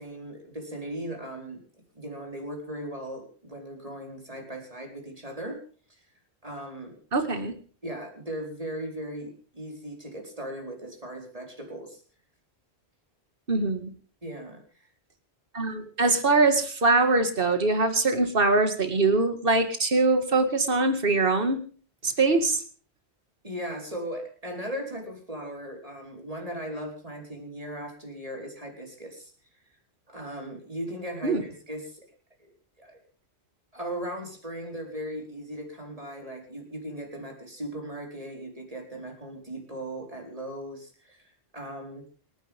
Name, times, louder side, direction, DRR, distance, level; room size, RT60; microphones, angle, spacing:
voice 1, 0.0-1.6 1.9-5.6 6.4-7.0 7.8-12.0 14.2-14.6 23.4-29.3 30.1-32.0 32.4-32.5 32.8-33.0 33.7-42.1, equal, 35° right, 2 dB, 4.9 m, -38 dB
voice 2, 7.1-7.5 13.5-13.9 15.5-21.6 22.0-22.6 31.2-31.4, right 3 dB, 55° right, 8 dB, 2.3 m, -23 dB
28.0 x 10.5 x 3.6 m, 0.42 s
omnidirectional pair, 1.1 m